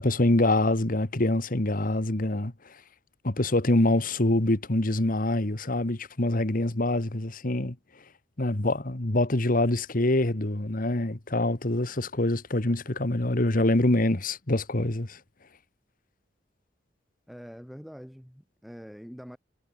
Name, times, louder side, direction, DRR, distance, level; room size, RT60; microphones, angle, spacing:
voice 1, 0.0-2.5 3.2-7.8 8.4-15.2, left 1 dB, 50° left, 1.7 m, -25 dB
voice 2, 17.3-19.4, equal, ahead, 4.4 m, -44 dB
head